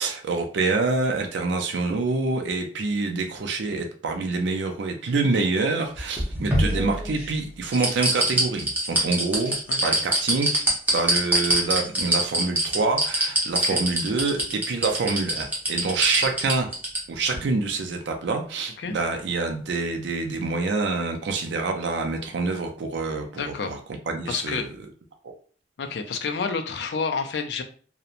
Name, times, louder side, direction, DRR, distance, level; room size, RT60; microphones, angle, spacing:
voice 1, 0.0-9.6 9.8-10.6 10.9-16.7 17.1-23.8 24.1-24.7 25.2-25.3, right 3 dB, 75° right, 3 dB, 0.4 m, -26 dB
sound 1, 6.0-7.3 7.7-17.0 17.3-17.4, right 1 dB, 10° right, 0.7 m, -23 dB
voice 2, 9.7-10.0 13.6-13.8 18.8-19.0 23.3-23.8 24.3-24.7 25.8-27.6, left 5 dB, 65° left, 6 dB, 0.4 m, -29 dB
2.8 x 2.1 x 2.4 m, 0.43 s
head